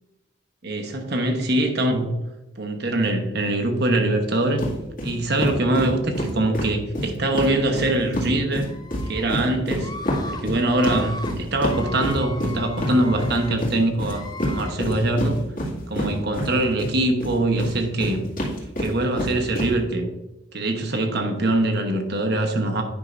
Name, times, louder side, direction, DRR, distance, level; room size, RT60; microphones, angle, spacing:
voice 1, 0.6-2.1 2.6-4.6 5.0-8.7 9.1-9.9 10.3-15.4 15.9-18.2 18.8-20.1 20.5-22.8, right 1 dB, 55° right, 5 dB, 1.0 m, -23 dB
sound 1, 4.6-4.7 5.0-5.1 5.4-8.3 8.5-16.9 17.2-19.7, equal, 40° left, 2.0 m, -27 dB
Screaming, 8.7-9.2 9.8-10.4 10.7-11.3 11.7-13.6 14.0-14.7, left 2 dB, 20° left, 0.5 m, -38 dB
9.6 x 5.7 x 2.5 m, 1.0 s
head